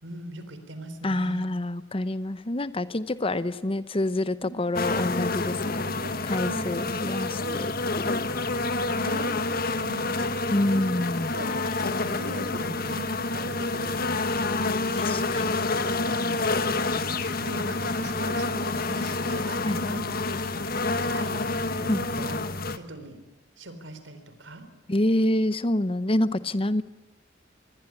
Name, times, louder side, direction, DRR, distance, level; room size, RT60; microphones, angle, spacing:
voice 1, 0.0-1.5 4.4-4.5 5.9-6.2 6.4-6.9 7.4-7.6 8.9-9.4 9.8-10.3 11.3-11.5 11.8-14.4 16.1-16.3 16.8-20.3 21.1-21.4 21.8-22.4 22.7-23.2 23.6-24.6, right 2 dB, 80° right, 9 dB, 4.0 m, -40 dB
voice 2, 1.0-5.8 6.2-8.3 10.5-11.4 15.0-15.4 19.7-19.8 21.9-22.0 24.9-26.8, left 1 dB, 30° left, 15 dB, 0.9 m, -27 dB
sound 1, 4.7-22.8, left 3 dB, 55° left, 1.6 m, -28 dB
26.5 x 21.5 x 10.0 m, 1.1 s
head